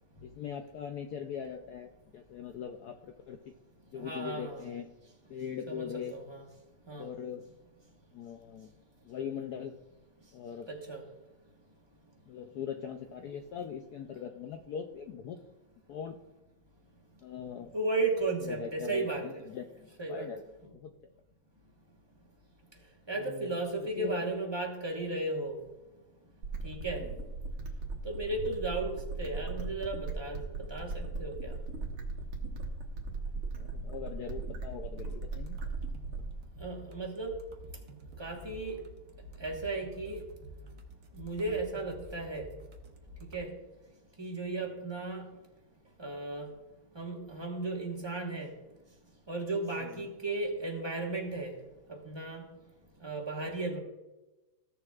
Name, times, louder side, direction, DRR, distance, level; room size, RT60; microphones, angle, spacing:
voice 1, 0.2-3.5 3.9-4.9 5.3-6.2 7.0-7.5 8.1-8.7 9.0-9.7 10.3-10.7 12.3-15.4 15.9-16.2 17.2-17.7 18.5-20.4 20.7-20.9 23.2-23.5 24.0-24.2 27.0-27.1 33.6-35.6 49.8-50.1, left 8 dB, 85° left, 5 dB, 0.8 m, -41 dB
voice 2, 4.0-4.6 5.7-6.4 6.9-7.1 10.7-11.0 17.7-19.4 20.0-20.3 23.1-25.6 26.6-27.1 28.0-30.4 30.7-31.5 36.6-37.4 38.2-38.8 39.4-40.2 41.2-42.5 43.3-43.6 44.2-45.2 46.0-46.5 46.9-48.5 49.3-51.5 52.0-52.4 53.0-53.8, right 2 dB, 15° right, 0 dB, 1.0 m, -35 dB
sound 1, 26.4-36.4, right 3 dB, 90° right, 2.0 m, -38 dB
sound 2, 35.0-43.4, equal, 55° right, 1.3 m, -49 dB
15.5 x 6.9 x 2.4 m, 1.1 s
omnidirectional pair, 2.3 m